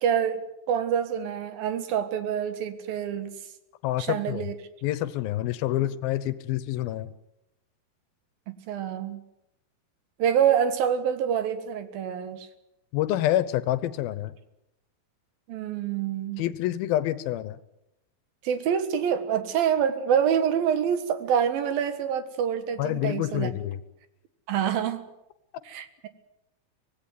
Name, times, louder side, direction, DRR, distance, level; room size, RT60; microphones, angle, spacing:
voice 1, 0.0-0.4 0.7-3.3 4.0-4.5 8.7-9.2 10.2-12.5 15.5-16.4 18.4-23.5 24.5-25.1 25.7-26.1, right 8 dB, 80° right, 11 dB, 3.3 m, -26 dB
voice 2, 3.8-4.5 4.8-7.1 12.9-14.3 16.4-17.6 22.8-23.8, left 13 dB, 85° left, 16 dB, 2.8 m, -27 dB
24.5 x 17.5 x 9.3 m, 0.87 s
omnidirectional pair, 4.1 m